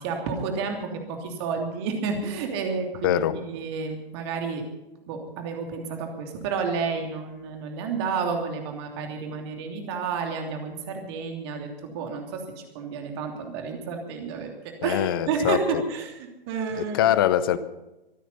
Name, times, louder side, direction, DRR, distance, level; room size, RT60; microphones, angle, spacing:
voice 1, 0.0-3.2 3.5-4.6 5.1-12.4 12.7-16.2 16.5-17.1, right 5 dB, 25° right, 3.0 m, -30 dB
voice 2, 3.0-3.4 14.8-15.8 16.8-17.6, left 11 dB, 25° left, 0.8 m, -23 dB
24.5 x 9.3 x 5.6 m
figure-of-eight pair, 130°, 29 cm